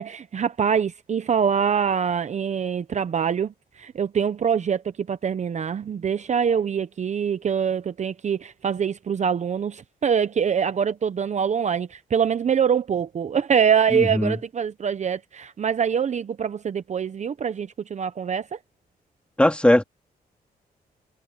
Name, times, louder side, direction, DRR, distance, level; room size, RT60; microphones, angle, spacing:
voice 1, 0.0-18.6, right 7 dB, 45° right, 0.7 m, -24 dB
voice 2, 13.9-14.4 19.4-19.8, left 1 dB, 5° left, 2.8 m, -19 dB
wide cardioid pair, 125°, 17 cm